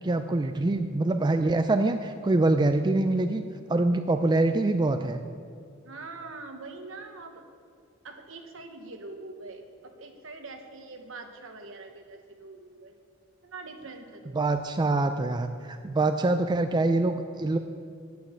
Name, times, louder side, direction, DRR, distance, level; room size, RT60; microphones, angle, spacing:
voice 1, 0.0-3.4 3.7-5.2 14.4-17.6, right 2 dB, 20° right, 8 dB, 0.4 m, -25 dB
voice 2, 5.8-7.4 8.0-12.9 13.4-14.7, right 3 dB, 70° right, 5 dB, 1.2 m, -43 dB
9.4 x 9.0 x 7.3 m, 2.2 s
head